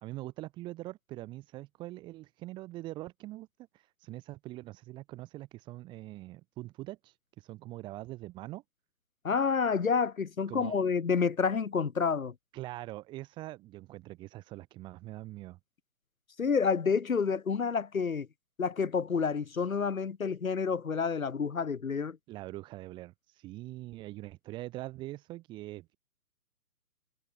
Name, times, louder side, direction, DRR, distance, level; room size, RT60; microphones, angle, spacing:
voice 1, 0.0-3.5 3.7-8.6 10.5-10.8 12.5-15.6 22.3-26.0, right 17 dB, 10° right, 1.4 m, -43 dB
voice 2, 9.2-12.3 16.4-18.3 18.6-22.2, left 5 dB, 60° left, 1.8 m, -29 dB
figure-of-eight pair, 140°, 47 cm